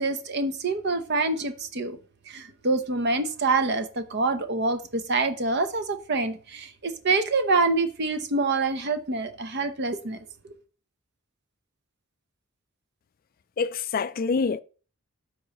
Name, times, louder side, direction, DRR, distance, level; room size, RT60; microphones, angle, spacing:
voice 1, 0.0-2.0 2.3-10.2 10.4-10.5, right 3 dB, 50° right, 0.8 m, -26 dB
voice 2, 13.6-14.6, left 5 dB, 40° left, 0.3 m, -26 dB
12.5 x 4.6 x 3.0 m
head